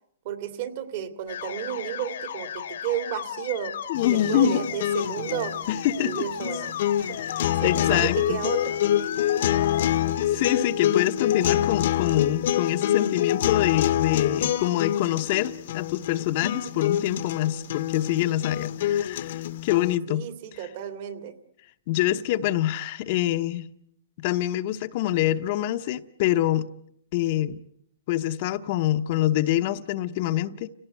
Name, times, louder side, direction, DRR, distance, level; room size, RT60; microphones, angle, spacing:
voice 1, 0.2-3.7 4.1-5.6 6.0-6.7 7.0-7.2 7.6-8.8 20.1-21.3, right 11 dB, 50° right, 9 dB, 2.5 m, -32 dB
sound 1, 1.3-10.3, left 9 dB, 75° left, 1.1 m, -36 dB
sound 2, 3.9-20.0, left 11 dB, 60° left, 1.2 m, -26 dB
voice 2, 3.9-4.7 5.7-6.1 7.2-8.4 10.3-20.2 20.5-20.7 21.9-23.7 24.2-26.7 27.1-27.6 28.1-30.7, left 13 dB, 45° left, 8 dB, 0.9 m, -25 dB
30.0 x 18.0 x 8.2 m, 0.70 s
hypercardioid pair, 155°, 0 cm